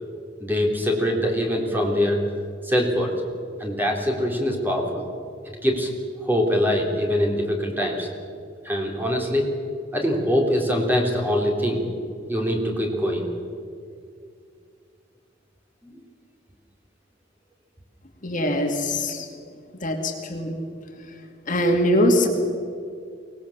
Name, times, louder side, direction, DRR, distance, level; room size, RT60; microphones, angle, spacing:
voice 1, 0.4-2.2 2.6-3.1 3.6-5.1 5.6-5.9 6.2-8.1 8.6-9.5 9.9-11.8 12.3-13.3 15.8-16.0, equal, 10° right, 0 dB, 3.5 m, -23 dB
voice 2, 18.2-19.3 19.8-20.5 21.5-22.3, left 1 dB, 45° left, 3 dB, 2.5 m, -22 dB
24.0 x 19.0 x 7.4 m, 2.3 s
head